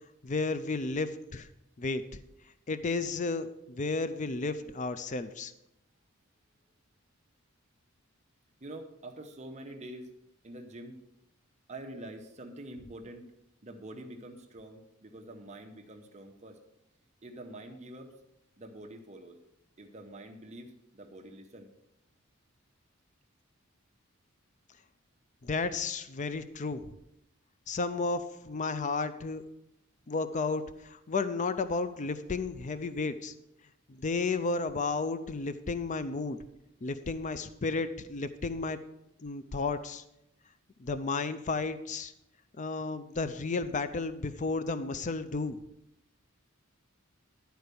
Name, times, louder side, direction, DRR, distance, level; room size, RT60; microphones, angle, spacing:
voice 1, 0.2-1.5 1.8-2.0 2.7-5.5 25.4-26.8 27.7-29.4 30.1-33.3 33.9-36.4 36.8-38.8 39.2-40.0 40.8-42.1 42.6-45.6, left 3 dB, 35° left, 12 dB, 0.5 m, -33 dB
voice 2, 8.6-10.1 10.4-11.0 11.7-13.3 13.6-16.6 17.2-18.2 18.6-19.4 19.8-21.7, right 1 dB, 35° right, 3 dB, 0.9 m, -46 dB
11.5 x 4.6 x 6.7 m, 0.83 s
head